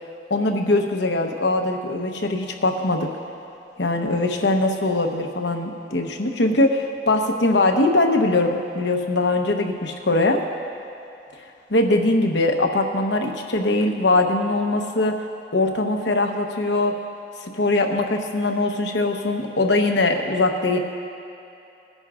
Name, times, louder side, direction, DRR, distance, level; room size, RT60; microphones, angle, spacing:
voice 1, 0.3-3.1 3.8-10.4 11.7-15.1 15.5-17.0 17.4-20.8, left 2 dB, 80° left, 3 dB, 1.0 m, -21 dB
19.5 x 10.5 x 2.5 m, 2.7 s
head